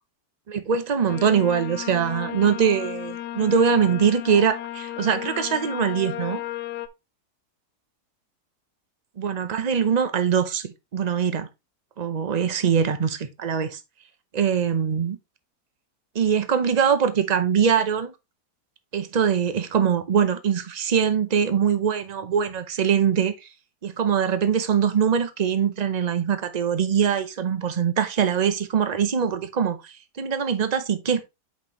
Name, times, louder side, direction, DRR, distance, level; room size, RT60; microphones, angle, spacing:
voice 1, 0.5-6.4 9.2-11.5 12.0-13.8 14.3-15.2 16.1-18.1 18.9-23.5 23.8-31.2, right 7 dB, 45° right, 0.5 m, -23 dB
sound 1, 1.1-6.9, left 13 dB, 75° left, 1.2 m, -34 dB
7.8 x 5.4 x 3.0 m
omnidirectional pair, 1.8 m